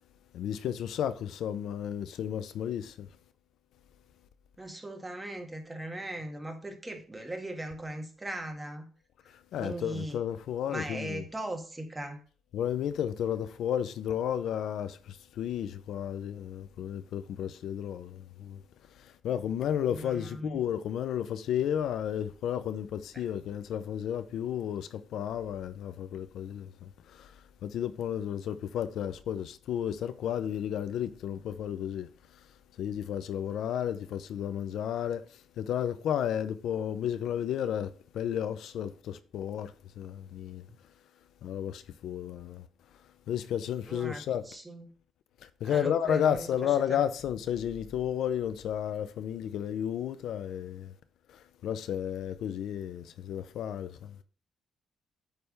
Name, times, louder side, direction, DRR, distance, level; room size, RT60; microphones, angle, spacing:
voice 1, 0.3-3.1 9.3-11.3 12.5-18.6 19.0-32.1 32.8-40.6 41.4-42.6 43.3-44.5 45.6-50.9 51.3-54.2, left 9 dB, 75° left, 0.6 m, -33 dB
voice 2, 4.6-8.9 9.6-10.2 10.7-12.2 19.9-20.6 23.1-23.2 43.9-44.9 45.6-47.0, right 1 dB, 15° right, 1.6 m, -39 dB
9.0 x 3.4 x 6.6 m
cardioid pair, 90°, 0 cm